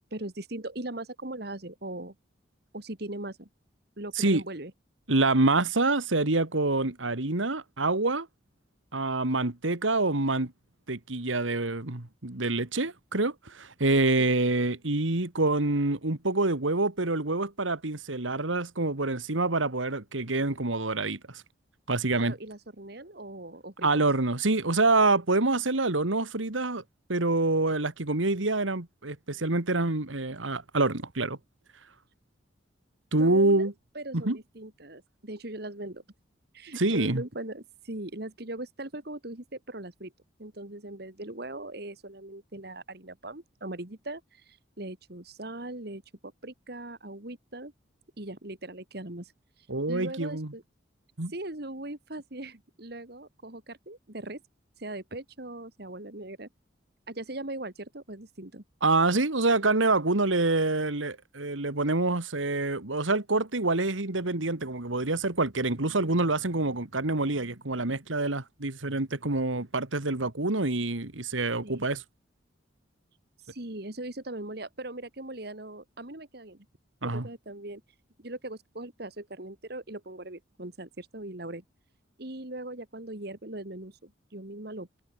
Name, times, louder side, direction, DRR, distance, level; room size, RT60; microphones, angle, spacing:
voice 1, 0.1-2.1 2.7-3.5 4.0-4.7 14.2-14.3 22.1-24.1 33.2-33.7 33.9-36.0 36.5-40.1 40.4-47.7 48.2-49.3 49.9-50.6 51.3-54.4 54.8-56.5 57.1-58.6 71.6-71.9 73.5-76.7 77.0-77.8 78.2-81.6 82.2-85.0, right 1 dB, 55° right, 2.3 m, -40 dB
voice 2, 5.1-8.3 8.9-10.5 10.9-21.4 21.9-22.3 23.8-26.8 27.1-31.4 33.1-33.7 34.2-34.4 36.8-37.2 49.7-50.5 51.2-51.3 58.8-72.0 77.0-77.3, right 2 dB, 85° right, 2.1 m, -26 dB
head